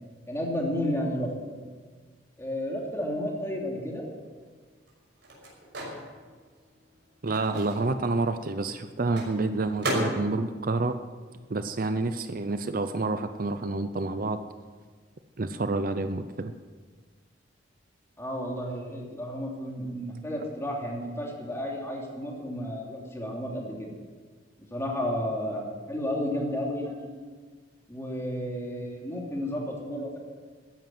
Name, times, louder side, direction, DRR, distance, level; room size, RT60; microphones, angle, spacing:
voice 1, 0.3-1.5 2.4-4.0 18.2-23.9 24.6-25.6 25.9-27.1 27.9-30.2, equal, 15° left, -1 dB, 2.9 m, -32 dB
Microwave oven, 3.9-12.0 12.3-14.2, right 1 dB, 70° right, 5.8 m, -38 dB
voice 2, 7.2-10.9 11.5-14.4 15.4-16.5, right 3 dB, 50° right, 10 dB, 0.6 m, -28 dB
15.0 x 10.5 x 7.8 m, 1.5 s
head